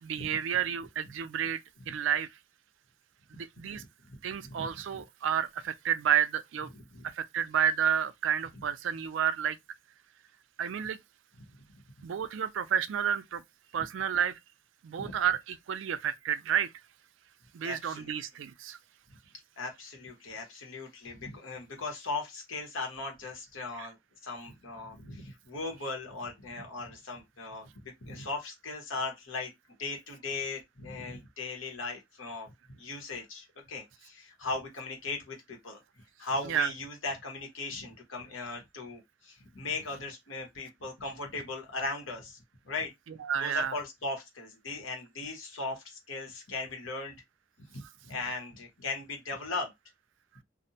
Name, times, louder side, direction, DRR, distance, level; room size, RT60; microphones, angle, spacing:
voice 1, 0.0-1.6 1.9-2.3 3.3-3.8 4.2-6.7 7.0-9.6 10.6-11.0 12.0-13.4 13.7-14.4 14.8-16.7 17.5-18.8 23.8-23.9 36.5-36.7 43.2-43.7, right 9 dB, 75° right, 0.3 m, -30 dB
voice 2, 3.7-4.2 4.4-4.7 6.7-7.1 15.0-15.1 17.6-18.1 19.6-24.0 24.2-29.5 29.8-35.8 36.2-42.9 43.4-47.1 47.7-49.7, left 3 dB, 90° left, 1.0 m, -38 dB
2.5 x 2.1 x 2.7 m
head